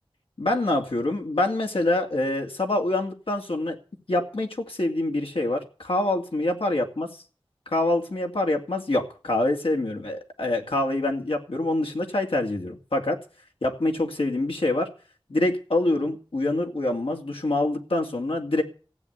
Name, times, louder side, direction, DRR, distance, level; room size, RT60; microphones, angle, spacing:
voice 1, 0.4-3.8 4.1-7.1 7.7-13.2 13.6-14.9 15.3-18.6, left 2 dB, 85° left, 2 dB, 2.5 m, -25 dB
15.5 x 8.5 x 8.1 m, 0.39 s
wide cardioid pair, 40°, 9 cm